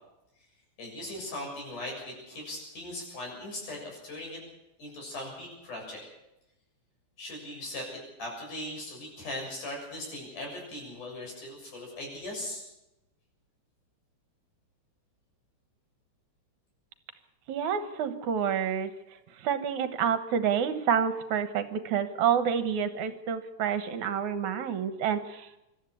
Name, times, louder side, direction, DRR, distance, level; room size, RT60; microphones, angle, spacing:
voice 1, 0.8-4.4 4.8-6.0 7.2-12.6, left 1 dB, 75° left, -1 dB, 8.7 m, -39 dB
voice 2, 17.5-18.9 19.4-25.6, right 8 dB, 70° right, 10 dB, 2.5 m, -28 dB
25.0 x 13.0 x 8.4 m, 0.92 s
omnidirectional pair, 3.6 m